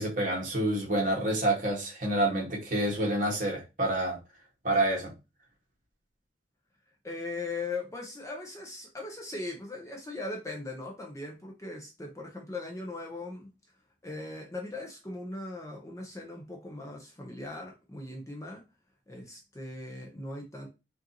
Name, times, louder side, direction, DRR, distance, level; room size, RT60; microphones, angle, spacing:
voice 1, 0.0-4.2 4.6-5.1, right 1 dB, 45° right, 1.6 m, -28 dB
voice 2, 7.0-13.5 14.0-18.6 19.1-20.7, left 2 dB, 15° left, 0.7 m, -39 dB
4.9 x 2.7 x 2.9 m
head